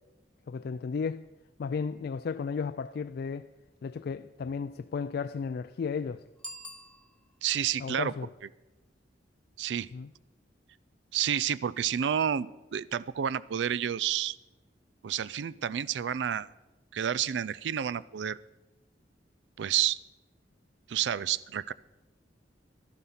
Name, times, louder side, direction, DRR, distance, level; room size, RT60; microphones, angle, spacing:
voice 1, 0.5-1.3 1.6-3.5 3.8-6.2 7.8-8.3 9.9-10.1, left 5 dB, 60° left, 0.3 m, -34 dB
Bicycle bell, 6.3-7.6, left 1 dB, 5° left, 0.9 m, -46 dB
voice 2, 7.4-8.1 9.6-9.9 11.1-14.4 15.0-16.5 16.9-18.4 19.6-20.0 20.9-21.7, right 9 dB, 75° right, 0.4 m, -30 dB
12.5 x 11.5 x 5.7 m
head